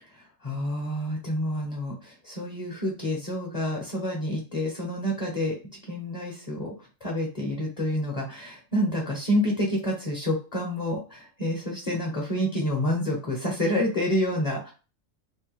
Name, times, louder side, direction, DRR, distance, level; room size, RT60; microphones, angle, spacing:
voice 1, 0.1-5.6 5.8-6.7 7.0-14.7, equal, 35° left, -1 dB, 0.7 m, -28 dB
3.2 x 2.1 x 3.0 m, 0.33 s
omnidirectional pair, 1.4 m